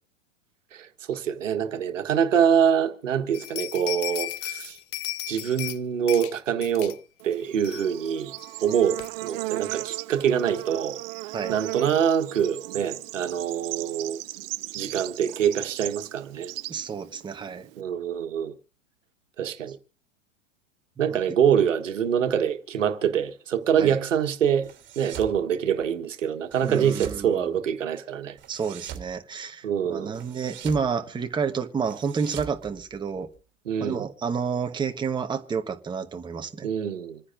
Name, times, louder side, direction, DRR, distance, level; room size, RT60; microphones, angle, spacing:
voice 1, 0.7-4.8 5.3-7.0 7.2-8.3 8.6-11.0 11.5-14.2 14.7-16.5 17.8-18.5 19.4-19.8 21.0-24.7 25.0-28.4 29.6-30.1 33.7-34.1 36.6-37.2, right 8 dB, 75° right, 1.5 m, -25 dB
sound 1, 3.3-5.8 6.1-6.3 6.6-7.0 7.3-7.4 7.6-8.1 8.4-8.5 9.0-9.1, left 16 dB, 35° left, 0.8 m, -34 dB
Bird / Insect, 7.2-17.8, right 19 dB, 50° right, 0.6 m, -36 dB
voice 2, 16.7-17.7 21.1-21.2 23.8-24.0 26.6-27.5 28.5-33.3 33.8-36.7, right 6 dB, 10° right, 1.1 m, -30 dB
sound 2, 24.6-25.4 26.5-27.2 28.4-29.1 30.1-30.9 31.8-33.4, right 10 dB, 30° right, 2.9 m, -41 dB
27.0 x 10.0 x 2.6 m
hypercardioid pair, 100°, 38 cm